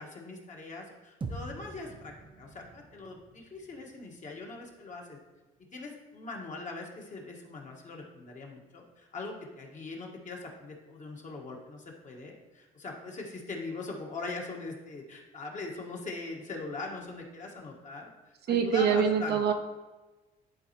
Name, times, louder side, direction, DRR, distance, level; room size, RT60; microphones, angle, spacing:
voice 1, 0.0-5.2 5.7-18.1 18.5-19.4, left 3 dB, 40° left, 0 dB, 1.5 m, -41 dB
sound 1, 1.2-5.6, right 2 dB, 25° right, 0.7 m, -45 dB
voice 2, 18.5-19.5, right 7 dB, 60° right, 6 dB, 0.7 m, -25 dB
10.5 x 4.1 x 3.0 m, 1.2 s
supercardioid pair, 85°, 19 cm